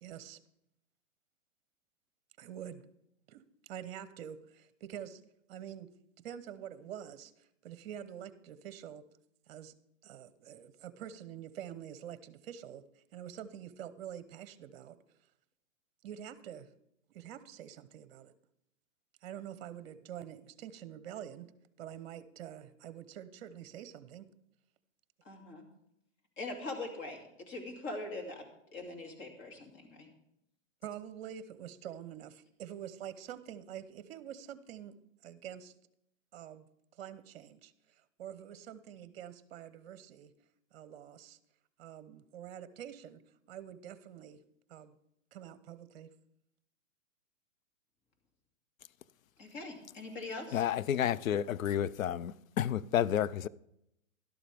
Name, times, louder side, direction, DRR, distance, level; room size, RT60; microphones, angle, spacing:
voice 1, 0.0-0.4 2.4-2.8 3.3-5.2 5.5-5.9 6.2-9.0 9.5-9.7 10.0-12.8 13.1-15.0 16.0-16.7 17.1-18.3 19.2-21.5 21.8-24.3 30.8-35.0 35.2-35.7 36.3-36.7 36.9-40.3 40.7-41.4 41.8-43.2 43.5-44.4 44.7-45.0 45.3-46.1, right 10 dB, 50° right, 0.9 m, -46 dB
voice 2, 25.2-25.7 26.4-28.5 28.7-30.1 49.4-50.6, left 2 dB, 30° left, 2.6 m, -42 dB
voice 3, 50.5-53.5, left 10 dB, 85° left, 0.6 m, -31 dB
12.0 x 12.0 x 3.5 m
hypercardioid pair, 130°, 39 cm